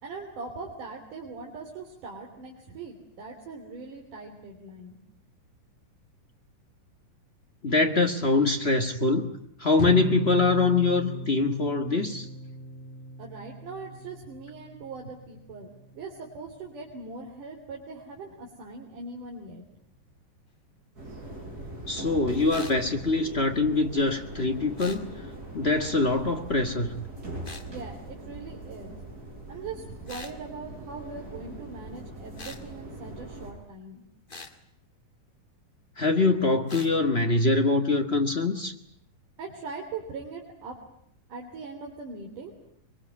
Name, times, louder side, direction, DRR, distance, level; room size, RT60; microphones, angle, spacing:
voice 1, 0.0-5.0 13.2-19.6 27.7-29.0 29.5-34.0 39.4-40.8 41.3-42.5, right 4 dB, 65° right, -1 dB, 4.8 m, -41 dB
voice 2, 7.6-9.3 9.6-12.3 21.9-25.0 25.5-27.1 36.0-38.7, left 3 dB, 45° left, 5 dB, 0.8 m, -24 dB
sound 1, 9.8-16.2, equal, 60° left, 3.1 m, -36 dB
sound 2, 21.0-33.5, right 1 dB, 25° right, 7.2 m, -41 dB
sound 3, 22.5-22.8 24.8-25.0 27.4-27.7 30.1-30.4 32.4-32.6 34.3-34.5 36.7-36.9, left 3 dB, 25° left, 1.1 m, -42 dB
23.5 x 23.0 x 9.4 m, 0.68 s
omnidirectional pair, 3.9 m